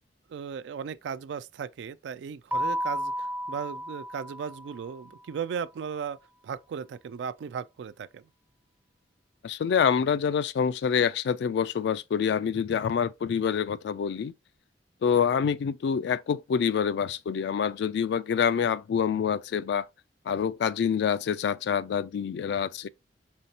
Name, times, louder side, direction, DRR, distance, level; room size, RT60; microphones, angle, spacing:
voice 1, 0.3-6.2 6.4-8.3, right 7 dB, 75° right, 0.3 m, -36 dB
Keyboard (musical), 2.5-5.1, equal, 10° right, 0.4 m, -33 dB
voice 2, 9.4-14.3 15.0-19.9 20.3-22.9, left 7 dB, 65° left, 0.3 m, -26 dB
5.5 x 3.2 x 2.7 m
head